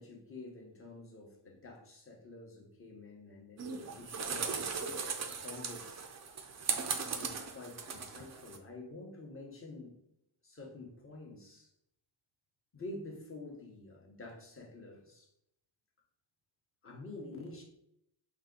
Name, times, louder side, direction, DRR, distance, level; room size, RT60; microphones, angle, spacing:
voice 1, 0.0-4.7 5.2-6.1 7.0-10.0 10.4-11.7 12.7-15.3 16.8-17.6, left 2 dB, 25° left, 0 dB, 0.9 m, -48 dB
sound 1, 3.6-8.6, right 5 dB, 35° right, 0.4 m, -38 dB
5.6 x 2.3 x 3.7 m, 0.78 s
wide cardioid pair, 145°, 49 cm